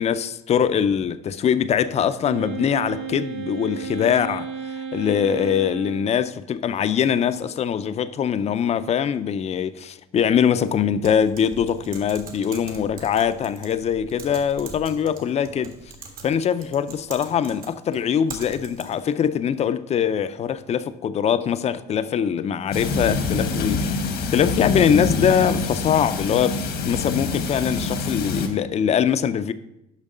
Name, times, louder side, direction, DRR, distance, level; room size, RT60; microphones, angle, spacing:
voice 1, 0.0-15.8 16.2-29.5, left 8 dB, 40° left, 0.5 m, -22 dB
Wind instrument woodwind instrument, 2.2-6.3, right 7 dB, 85° right, 1.3 m, -33 dB
Typing, 11.0-19.2, right 4 dB, 60° right, 1.6 m, -42 dB
sound 1, 22.7-28.5, left 4 dB, 75° left, 1.2 m, -25 dB
7.3 x 5.8 x 5.4 m
cardioid pair, 110°, 17 cm